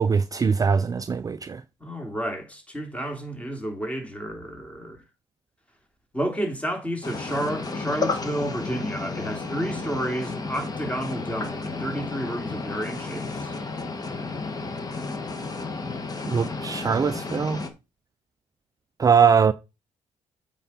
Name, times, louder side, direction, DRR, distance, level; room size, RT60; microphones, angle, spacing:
voice 1, 0.0-1.6 16.3-17.6 19.0-19.5, right 6 dB, 25° right, 0.4 m, -21 dB
voice 2, 1.8-5.0 6.1-13.5, right 1 dB, 10° left, 3.1 m, -31 dB
sound 1, 7.0-17.7, left 3 dB, 30° left, 1.8 m, -32 dB
8.2 x 4.4 x 5.7 m
cardioid pair, 110°, 13 cm